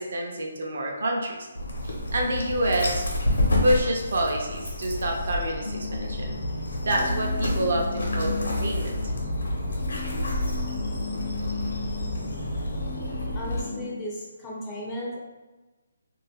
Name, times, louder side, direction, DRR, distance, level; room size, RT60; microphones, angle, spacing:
voice 1, 0.0-1.5 1.8-3.1 3.6-6.3 6.8-8.9, right 1 dB, 55° right, 0 dB, 0.6 m, -27 dB
Dog, 1.5-13.6, left 1 dB, 85° left, 0.9 m, -29 dB
sound 1, 5.6-13.9, left 4 dB, 60° left, 0.5 m, -36 dB
voice 2, 13.3-15.2, equal, 10° left, -5 dB, 0.4 m, -35 dB
2.6 x 2.4 x 3.4 m, 1.2 s
hypercardioid pair, 175°, 0 cm